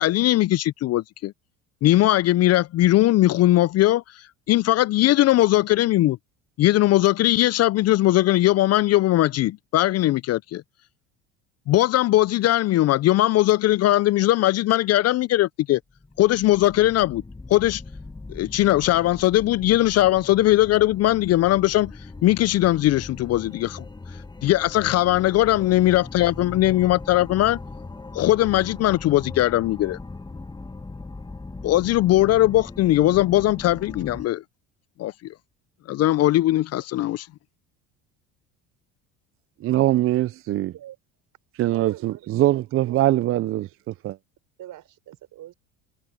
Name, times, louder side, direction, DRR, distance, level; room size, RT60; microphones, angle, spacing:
voice 1, 0.0-1.3 1.8-6.2 6.6-10.6 11.7-15.8 16.2-17.2 17.5-17.8 18.3-21.9 22.2-23.8 24.4-27.6 28.1-30.0 31.6-34.4 35.0-35.1 35.9-37.3, left 15 dB, 45° left, 0.5 m, -20 dB
sound 1, 15.9-34.2, left 3 dB, 10° left, 1.2 m, -39 dB
voice 2, 39.6-40.7 41.6-44.2, right 15 dB, 40° right, 0.4 m, -22 dB
voice 3, 40.5-41.0 41.7-42.3 42.8-43.1 44.6-45.5, right 13 dB, 60° right, 5.4 m, -44 dB
supercardioid pair, 85°, 37 cm